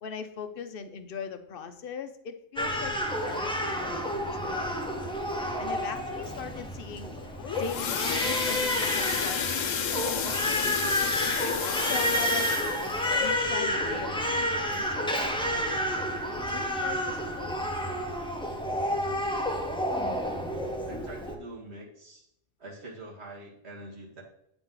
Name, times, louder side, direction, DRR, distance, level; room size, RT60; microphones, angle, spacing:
voice 1, 0.0-3.0 3.2-4.7 5.6-7.1 7.5-11.0 11.8-12.8 13.2-15.2 15.5-18.0, left 6 dB, 55° left, 9 dB, 0.7 m, -40 dB
Crying sobbing, 2.6-21.4, equal, 5° left, 0.5 m, -30 dB
sound 1, 7.2-15.8 16.3-16.5 16.8-16.9 17.4-17.5, left 8 dB, 85° left, 1.0 m, -32 dB
voice 2, 20.9-22.3 22.6-24.2, right 2 dB, 60° right, -2 dB, 1.8 m, -44 dB
9.2 x 3.9 x 3.7 m, 0.74 s
omnidirectional pair, 1.3 m